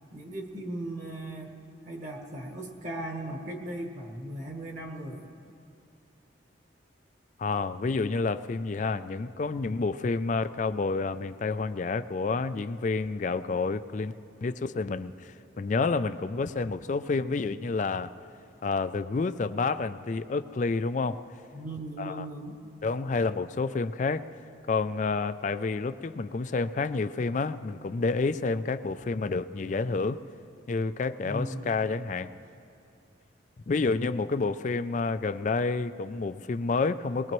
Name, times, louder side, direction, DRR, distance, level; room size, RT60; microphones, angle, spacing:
voice 1, 0.1-1.6 1.8-5.3 21.5-22.6 31.2-31.7, right 1 dB, 40° right, 2 dB, 1.2 m, -37 dB
voice 2, 7.4-14.1 14.4-18.1 18.6-21.2 22.0-22.3 22.8-24.3 24.7-30.2 30.7-32.3 33.7-37.3, left 4 dB, 40° left, 12 dB, 0.3 m, -29 dB
21.0 x 20.5 x 3.1 m, 2.5 s
head